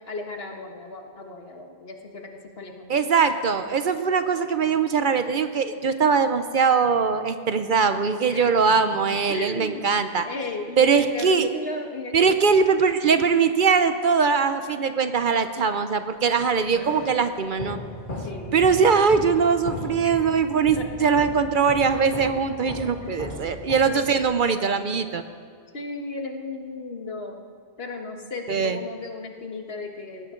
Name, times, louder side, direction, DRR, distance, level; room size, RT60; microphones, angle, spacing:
voice 1, 0.1-2.3 2.6-3.0 8.2-9.0 9.3-9.9 10.2-12.4 18.2-18.6 20.0-20.1 20.8-20.9 23.0-23.4 23.9-24.1 25.7-27.4 27.8-30.3, left 3 dB, 70° left, 3 dB, 1.7 m, -35 dB
voice 2, 2.9-10.3 10.8-11.5 12.1-17.8 18.5-25.2 28.5-28.8, right 5 dB, 55° right, 10 dB, 0.8 m, -21 dB
sound 1, 16.3-24.4, left 1 dB, 50° left, 2.2 m, -37 dB
19.5 x 15.0 x 3.8 m, 2.2 s
omnidirectional pair, 1.1 m